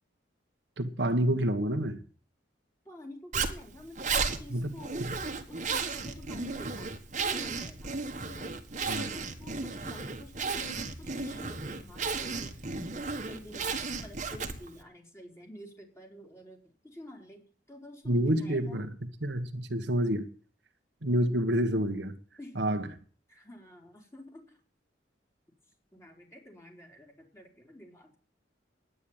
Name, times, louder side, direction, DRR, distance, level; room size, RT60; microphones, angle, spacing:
voice 1, 0.8-2.0 4.5-5.1 8.9-9.1 18.0-20.3 21.0-22.2 22.5-22.9, right 1 dB, 70° right, 1.6 m, -28 dB
voice 2, 2.9-5.1 5.5-6.9 7.2-7.9 8.3-18.9 22.4-22.6 23.3-24.6 25.9-28.2, left 1 dB, 15° left, 3.9 m, -49 dB
Zipper (clothing), 3.3-14.8, right 4 dB, 40° right, 1.8 m, -34 dB
11.5 x 9.7 x 8.9 m
head